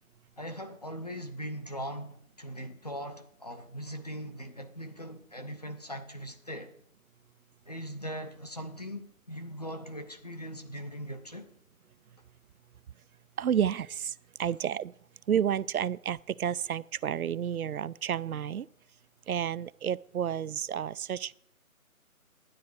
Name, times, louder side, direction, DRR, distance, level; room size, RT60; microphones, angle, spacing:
voice 1, 0.4-6.7 7.7-11.5, equal, 30° left, 0.7 m, -40 dB
voice 2, 13.4-14.1 14.4-14.9 15.3-18.7 19.3-21.3, right 9 dB, 75° right, 0.5 m, -30 dB
11.5 x 9.5 x 4.7 m
figure-of-eight pair, 160°, 43 cm